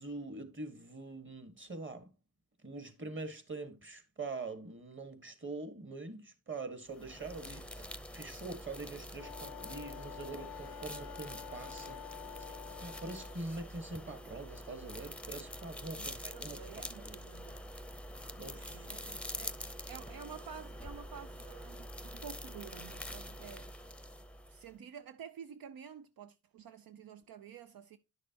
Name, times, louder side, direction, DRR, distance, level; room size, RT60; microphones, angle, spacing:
voice 1, 0.0-2.1 2.6-12.0 12.3-17.2 18.4-18.9, right 3 dB, 30° right, 1.5 m, -44 dB
sound 1, 6.9-24.7, equal, 5° left, 0.6 m, -46 dB
Wind instrument woodwind instrument, 9.1-13.4, left 13 dB, 85° left, 0.6 m, -49 dB
voice 2, 16.3-17.6 18.7-19.6 19.8-23.7 24.5-28.0, right 8 dB, 70° right, 0.5 m, -50 dB
10.0 x 6.5 x 2.8 m
cardioid pair, 55°, 36 cm